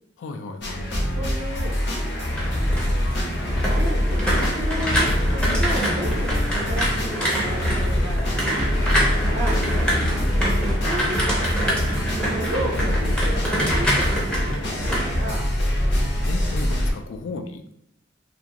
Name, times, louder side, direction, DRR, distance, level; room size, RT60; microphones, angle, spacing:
voice 1, 0.2-0.8 8.7-9.0 10.1-10.5 12.6-13.0 16.2-17.6, left 3 dB, 75° left, 6 dB, 0.3 m, -35 dB
sound 1, 0.6-16.9, equal, 60° left, 0.7 m, -24 dB
voice 2, 0.8-1.9 2.4-2.9 3.7-4.0 4.3-8.7 8.9-9.6 10.4-11.9 12.3-15.4, right 1 dB, 55° right, -3 dB, 0.4 m, -34 dB
sound 2, 2.0-16.0 16.3-16.7, equal, 5° left, 0.5 m, -26 dB
2.4 x 2.3 x 2.8 m, 0.76 s
head